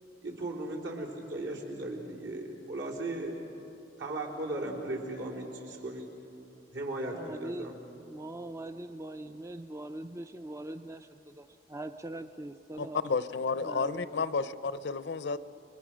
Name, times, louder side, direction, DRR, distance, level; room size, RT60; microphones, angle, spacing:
voice 1, 0.2-3.4 4.0-6.1 6.7-7.7, right 2 dB, 75° right, -3 dB, 4.0 m, -37 dB
voice 2, 7.1-13.2 13.6-14.3, right 1 dB, 15° right, 9 dB, 0.4 m, -42 dB
voice 3, 12.8-15.4, left 4 dB, 65° left, 14 dB, 0.6 m, -31 dB
29.5 x 22.0 x 6.3 m, 2.9 s
head